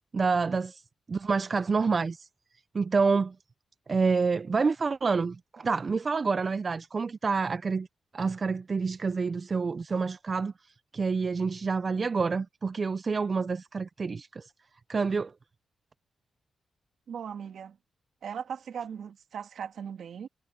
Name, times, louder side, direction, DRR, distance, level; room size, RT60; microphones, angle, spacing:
voice 1, 0.1-0.8 1.1-2.3 2.7-3.3 3.9-7.9 8.1-10.5 10.9-14.5 14.9-15.3, right 4 dB, 45° right, 0.5 m, -28 dB
voice 2, 17.1-17.8 18.2-20.3, right 7 dB, 75° right, 2.1 m, -38 dB
cardioid pair, 75°, 0 cm